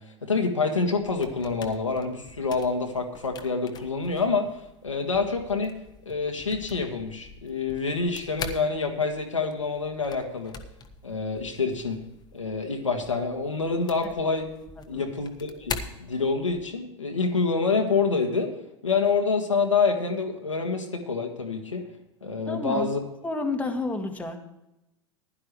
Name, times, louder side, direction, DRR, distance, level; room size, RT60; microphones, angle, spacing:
voice 1, 0.2-5.8 6.0-10.5 11.0-12.0 12.3-14.5 14.9-18.5 18.8-21.8 22.2-23.0, left 4 dB, 85° left, 2 dB, 1.8 m, -27 dB
sound 1, 0.8-16.7, left 5 dB, 25° left, 1.3 m, -43 dB
voice 2, 22.5-22.9 23.2-24.4, left 3 dB, 10° left, 2 dB, 1.8 m, -30 dB
15.5 x 11.5 x 3.2 m, 0.88 s
figure-of-eight pair, 85°, 16 cm